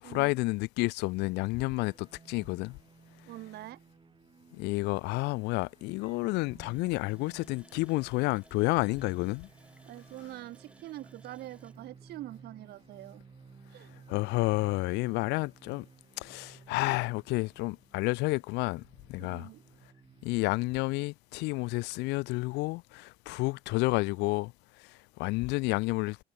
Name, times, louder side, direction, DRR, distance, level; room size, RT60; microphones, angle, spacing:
voice 1, 0.0-2.8 4.5-9.5 14.1-15.9 16.2-18.8 19.1-19.5 20.2-24.5 24.8-26.2, left 23 dB, 90° left, 0.4 m, -30 dB
sound 1, 1.6-20.4, right 5 dB, 30° right, 5.4 m, -56 dB
voice 2, 3.3-3.8 9.8-13.2 13.7-13.9 19.2-19.6, right 15 dB, 70° right, 1.2 m, -44 dB
Water tap faucet, 6.6-13.1 13.5-13.6 14.0-14.2, right 1 dB, 5° right, 5.7 m, -63 dB
cardioid pair, 110°, 17 cm